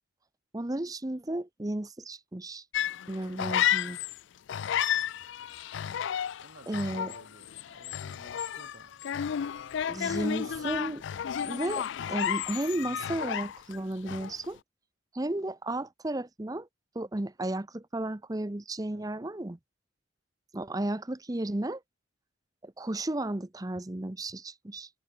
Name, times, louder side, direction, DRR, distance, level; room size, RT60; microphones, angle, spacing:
voice 1, 0.5-2.6 3.1-4.0 6.7-7.1 9.9-11.0 11.4-14.6 15.1-16.7 16.9-19.6 20.5-21.8 22.6-24.9, right 1 dB, 20° right, 0.6 m, -33 dB
Content warning, 2.7-4.2 4.5-13.8 14.1-14.5, left 9 dB, 60° left, 0.3 m, -32 dB
voice 2, 4.5-5.1 6.4-9.0 9.9-10.9 18.9-19.1, right 1 dB, 55° right, 3.2 m, -55 dB
head